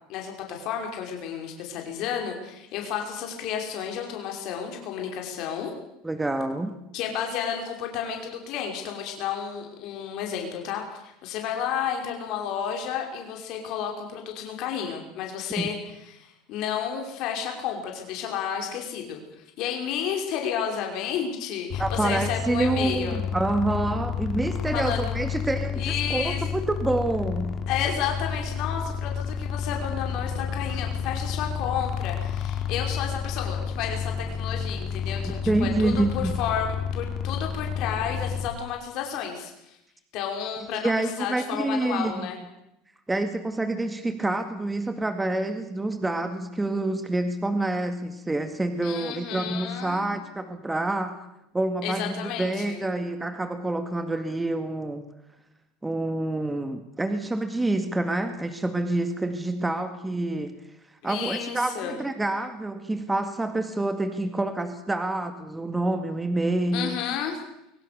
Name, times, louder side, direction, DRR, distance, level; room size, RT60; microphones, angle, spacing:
voice 1, 0.1-5.7 6.9-15.8 16.1-19.2 19.6-23.2 24.7-25.2 25.8-26.4 27.7-39.8 40.1-42.4 48.8-50.0 51.8-52.8 61.0-62.0 66.7-67.4, left 8 dB, 60° left, 2 dB, 5.5 m, -31 dB
voice 2, 6.0-6.7 21.8-27.6 35.2-36.4 40.8-42.2 43.1-51.2 51.5-55.1 55.8-60.6 61.0-67.0, right 2 dB, 10° right, 8 dB, 2.1 m, -27 dB
sound 1, 21.7-38.5, left 7 dB, 40° left, 3.4 m, -30 dB
24.5 x 23.5 x 7.0 m, 0.84 s
supercardioid pair, 110°, 0 cm